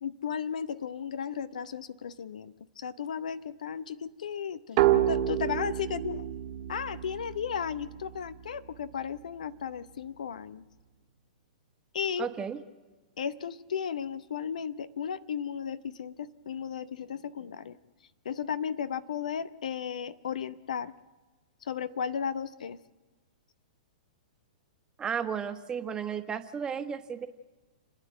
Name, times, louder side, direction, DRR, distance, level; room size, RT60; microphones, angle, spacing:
voice 1, 0.0-6.3 6.7-10.6 11.9-12.3 13.2-17.8 18.2-20.9 21.6-22.8, left 7 dB, 70° left, 14 dB, 0.8 m, -35 dB
sound 1, 4.8-8.2, right 13 dB, 50° right, 1.6 m, -28 dB
voice 2, 12.2-12.6 25.0-27.3, right 7 dB, 20° right, 8 dB, 1.3 m, -33 dB
29.5 x 9.8 x 9.1 m, 1.3 s
hypercardioid pair, 115°, 4 cm